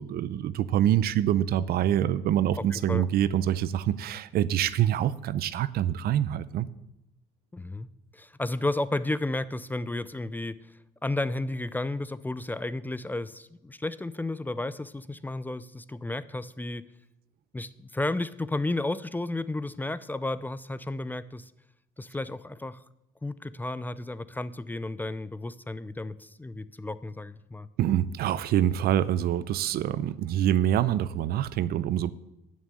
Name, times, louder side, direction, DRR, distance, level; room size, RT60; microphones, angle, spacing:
voice 1, 0.0-6.7 27.8-32.1, right 11 dB, 65° right, 18 dB, 0.6 m, -25 dB
voice 2, 2.7-3.0 7.5-7.9 8.1-10.7 11.0-16.8 17.5-21.5 22.0-22.8 23.2-27.7, left 2 dB, 10° left, 16 dB, 0.4 m, -32 dB
11.0 x 6.4 x 8.4 m, 0.86 s
cardioid pair, 110°, 17 cm